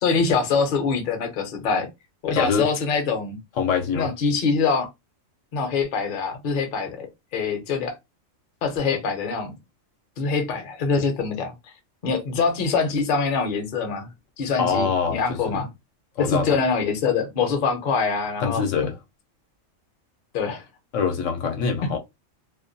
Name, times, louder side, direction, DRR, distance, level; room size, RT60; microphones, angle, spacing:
voice 1, 0.0-1.9 2.2-3.4 3.9-4.9 5.5-7.1 7.3-8.0 8.6-9.5 10.2-11.5 12.0-14.1 14.4-15.7 16.2-18.6 20.3-20.6 21.8-21.9, left 5 dB, 50° left, 0.7 m, -24 dB
voice 2, 2.4-2.7 3.6-4.1 14.6-15.6 16.2-16.6 18.4-18.9 20.9-22.0, left 6 dB, 80° left, 0.9 m, -24 dB
2.4 x 2.2 x 2.5 m
omnidirectional pair, 1.3 m